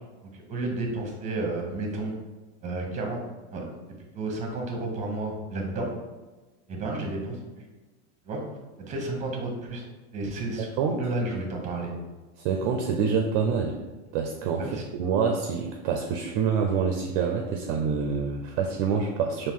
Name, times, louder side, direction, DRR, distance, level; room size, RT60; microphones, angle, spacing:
voice 1, 0.2-2.1 2.6-3.2 3.5-5.9 6.7-7.6 8.2-8.4 8.8-9.8 10.1-11.9 14.6-14.8, right 2 dB, 20° right, 1 dB, 1.0 m, -32 dB
voice 2, 10.6-11.0 12.4-13.8 14.1-19.5, right 6 dB, 50° right, 3 dB, 0.4 m, -26 dB
4.5 x 2.6 x 3.6 m, 1.2 s
supercardioid pair, 145°, 34 cm